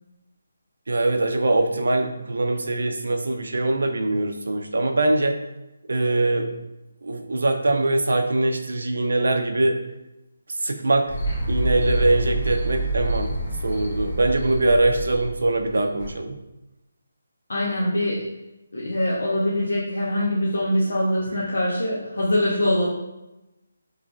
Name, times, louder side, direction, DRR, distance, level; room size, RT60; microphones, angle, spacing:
voice 1, 0.9-5.4 5.9-6.5 7.0-9.8 10.6-11.1 11.5-13.3 13.6-16.4, right 2 dB, 70° right, 4 dB, 0.4 m, -22 dB
sound 1, 11.1-16.1, right 1 dB, 50° left, 1.1 m, -27 dB
voice 2, 17.5-18.2 18.7-22.9, left 1 dB, 80° left, -5 dB, 0.8 m, -23 dB
3.0 x 2.4 x 3.6 m, 0.95 s
hypercardioid pair, 180°, 0 cm